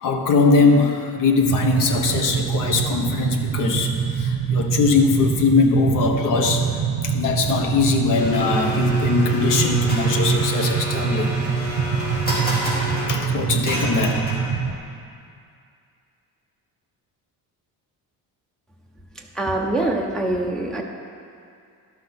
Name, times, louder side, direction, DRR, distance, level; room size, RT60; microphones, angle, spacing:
voice 1, 0.0-11.3 13.1-14.1, left 4 dB, 60° left, 3 dB, 1.0 m, -21 dB
sound 1, 1.4-14.8, right 6 dB, 50° right, 0.7 m, -24 dB
Domestic sounds home sounds, 8.2-14.7, left 1 dB, 25° left, 2.4 m, -29 dB
voice 2, 19.4-20.8, right 2 dB, ahead, -1 dB, 0.6 m, -24 dB
11.5 x 5.9 x 5.7 m, 2.4 s
cardioid pair, 175°, 36 cm